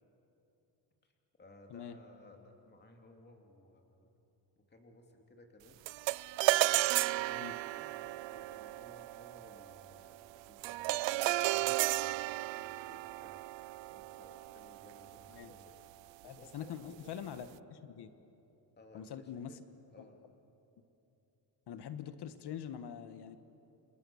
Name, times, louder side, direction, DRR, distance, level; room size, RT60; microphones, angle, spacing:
voice 1, 1.4-4.1 4.6-5.8 6.6-13.6 13.9-15.8 16.2-17.6 18.7-19.6 19.9-20.2, left 1 dB, 25° left, 3 dB, 2.8 m, -59 dB
sound 1, 5.9-15.3, right 18 dB, 90° right, 0.5 m, -34 dB
voice 2, 16.2-17.5 17.8-18.1 18.9-19.6 20.0-20.1 21.7-23.4, left 9 dB, 65° left, 11 dB, 1.4 m, -44 dB
30.0 x 27.0 x 7.1 m, 2.9 s
cardioid pair, 135°, 43 cm